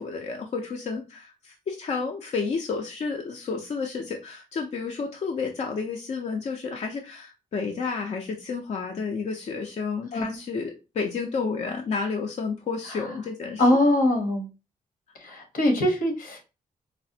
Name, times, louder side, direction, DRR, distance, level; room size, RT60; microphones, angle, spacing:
voice 1, 0.0-13.7, left 4 dB, 50° left, 2 dB, 0.5 m, -31 dB
voice 2, 13.6-14.5 15.2-16.4, left 1 dB, 75° left, 4 dB, 1.0 m, -22 dB
4.0 x 2.0 x 2.6 m, 0.29 s
wide cardioid pair, 125°, 15 cm